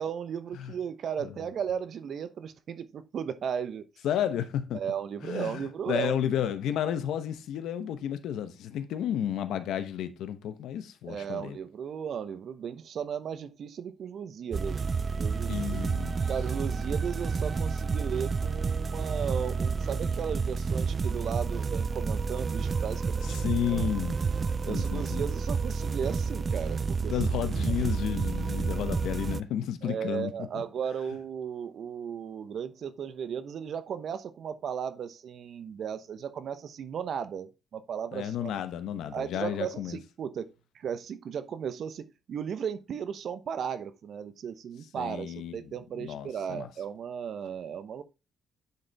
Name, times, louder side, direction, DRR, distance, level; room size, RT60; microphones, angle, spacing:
voice 1, 0.0-3.8 4.7-6.1 11.0-14.8 15.2-15.8 16.3-23.3 23.7-23.9 24.6-27.1 29.8-38.5 39.1-40.5 40.7-48.0, right 7 dB, 60° right, 0.8 m, -35 dB
voice 2, 4.0-4.8 5.2-11.6 15.5-16.2 23.2-24.2 24.6-25.2 27.1-30.6 38.1-40.0 45.0-45.7 46.0-46.7, left 10 dB, 80° left, 0.9 m, -32 dB
sound 1, 14.5-29.4, right 5 dB, 35° right, 0.4 m, -30 dB
9.5 x 4.0 x 3.4 m
cardioid pair, 90°, 0 cm